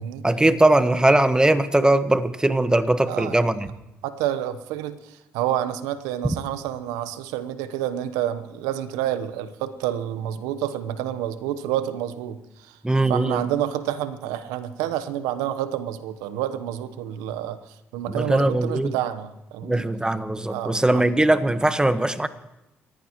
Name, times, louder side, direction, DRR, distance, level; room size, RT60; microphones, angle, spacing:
voice 1, 0.2-3.7 12.8-13.4 18.1-18.9 19.6-22.3, right 1 dB, 15° right, 12 dB, 1.4 m, -20 dB
voice 2, 3.1-3.5 4.0-12.8 13.1-19.9 20.5-21.1, right 11 dB, 80° right, 13 dB, 1.0 m, -29 dB
29.0 x 15.0 x 3.1 m, 0.95 s
hypercardioid pair, 50°, 6 cm